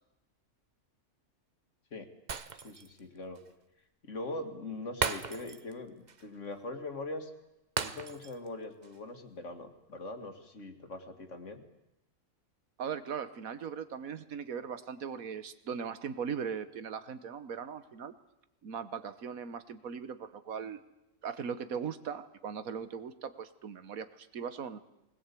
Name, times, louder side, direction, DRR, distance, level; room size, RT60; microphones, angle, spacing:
Shatter, 2.3-3.0 3.4-3.5 5.0-5.8 6.1-6.2 7.8-8.5 8.8-9.0, right 5 dB, 35° right, 0.9 m, -36 dB
voice 1, 2.5-3.4 4.0-7.3 7.8-11.6, left 2 dB, 60° left, 6 dB, 2.3 m, -42 dB
voice 2, 12.8-18.1 18.6-20.8 21.2-24.8, right 7 dB, 80° right, 12 dB, 1.6 m, -39 dB
20.0 x 19.5 x 8.4 m, 0.92 s
omnidirectional pair, 1.4 m